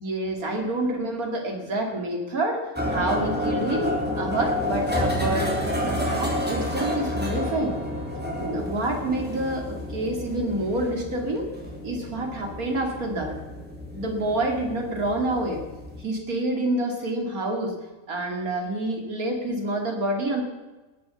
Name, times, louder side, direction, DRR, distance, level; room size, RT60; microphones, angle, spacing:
voice 1, 0.0-7.8 8.4-11.5 11.8-13.3 13.9-15.6 16.0-17.8 18.1-20.4, right 1 dB, 80° right, 2 dB, 2.9 m, -28 dB
sound 1, 2.8-16.0, left 1 dB, 5° right, 3.3 m, -30 dB
19.0 x 8.2 x 6.9 m, 1.2 s
omnidirectional pair, 1.5 m